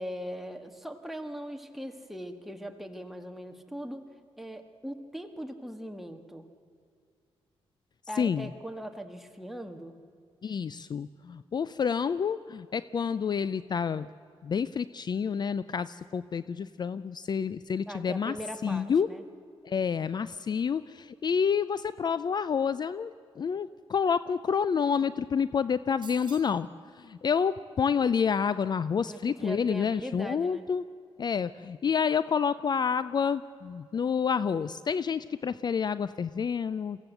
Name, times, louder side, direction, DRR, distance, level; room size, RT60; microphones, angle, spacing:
voice 1, 0.0-4.0 4.4-6.5 8.1-10.0 17.9-19.2 29.0-30.6, equal, ahead, 5 dB, 1.7 m, -40 dB
voice 2, 8.2-8.5 10.4-14.1 14.4-18.3 18.6-19.1 19.6-23.1 23.4-26.7 27.0-30.8 31.2-37.0, left 6 dB, 45° left, 16 dB, 0.4 m, -28 dB
sound 1, 26.0-26.6, right 6 dB, 50° right, 1.4 m, -48 dB
22.5 x 16.0 x 8.0 m, 2.3 s
cardioid pair, 85°, 10 cm